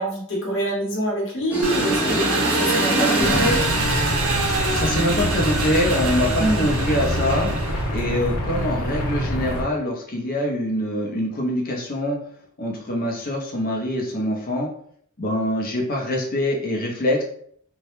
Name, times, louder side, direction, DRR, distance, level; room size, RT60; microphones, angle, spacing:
voice 1, 0.0-3.7 6.4-6.7, right 1 dB, 60° left, -2 dB, 0.9 m, -25 dB
sound 1, 1.5-4.0, equal, 5° right, 0.3 m, -25 dB
Engine, 1.6-8.1, right 2 dB, 75° right, 0.6 m, -25 dB
sound 2, 3.2-9.6, equal, 85° left, 0.6 m, -26 dB
voice 2, 4.7-7.5 7.9-12.2 12.6-14.7 15.2-17.2, left 1 dB, 45° left, -1 dB, 0.6 m, -24 dB
2.2 x 2.0 x 2.9 m, 0.62 s
head